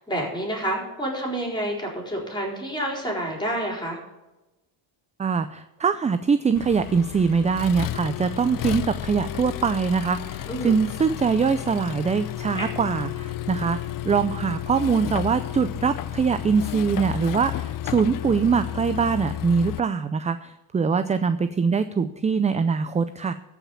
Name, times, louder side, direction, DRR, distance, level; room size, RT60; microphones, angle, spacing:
voice 1, 0.0-4.0 10.5-10.8 12.5-12.7, right 1 dB, 10° left, 0 dB, 4.3 m, -29 dB
voice 2, 5.2-23.3, right 5 dB, 15° right, 11 dB, 0.4 m, -23 dB
Accelerating revving vroom, 6.6-19.8, left 12 dB, 45° left, 0.5 m, -32 dB
14.0 x 5.8 x 7.0 m, 1.0 s
cardioid pair, 115°, 49 cm